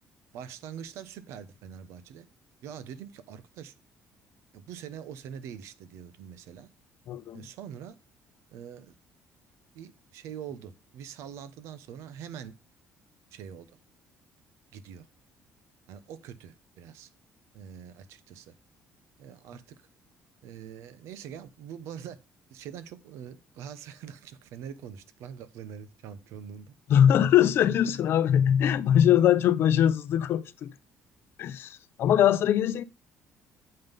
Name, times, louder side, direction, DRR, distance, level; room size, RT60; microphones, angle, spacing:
voice 1, 0.3-2.3 2.6-3.7 4.5-6.7 7.3-8.0 8.5-8.9 9.7-12.5 13.3-13.7 14.7-15.1 15.9-17.1 17.5-18.5 19.2-19.8 20.4-22.2 22.5-26.7, right 8 dB, 80° right, 0.9 m, -43 dB
voice 2, 7.1-7.5 26.9-30.7 31.4-32.8, left 10 dB, 55° left, 0.6 m, -22 dB
7.7 x 5.5 x 5.2 m
cardioid pair, 150°, 5 cm